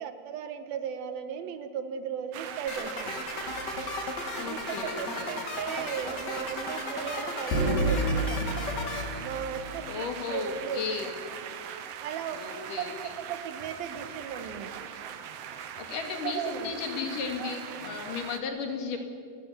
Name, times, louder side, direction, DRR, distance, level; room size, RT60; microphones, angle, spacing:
voice 1, 0.0-3.5 4.4-8.6 9.2-10.8 12.0-14.9 16.2-16.7, right 8 dB, 70° right, 9 dB, 3.0 m, -36 dB
sound 1, 2.3-18.4, right 8 dB, 90° right, 1.3 m, -41 dB
sound 2, 2.7-9.0, left 3 dB, 35° left, 2.3 m, -36 dB
sound 3, 3.5-3.8 7.5-9.8, right 1 dB, 80° left, 6.0 m, -29 dB
voice 2, 4.3-5.3 9.9-11.1 12.3-12.9 15.8-19.0, left 5 dB, 60° left, 4 dB, 3.6 m, -35 dB
29.0 x 13.5 x 9.5 m, 2.4 s
omnidirectional pair, 4.6 m